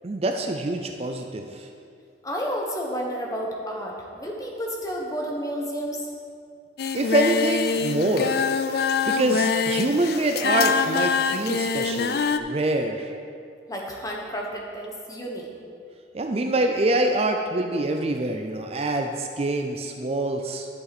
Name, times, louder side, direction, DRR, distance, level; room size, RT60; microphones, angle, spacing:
voice 1, 0.0-1.7 7.0-8.4 9.1-13.1 16.1-20.7, right 2 dB, 35° right, 4 dB, 0.5 m, -25 dB
voice 2, 2.2-6.0 13.7-15.5, equal, 20° left, -1 dB, 1.3 m, -31 dB
Singing, 6.8-12.4, left 5 dB, 60° left, 0.4 m, -24 dB
11.0 x 7.8 x 4.2 m, 2.4 s
head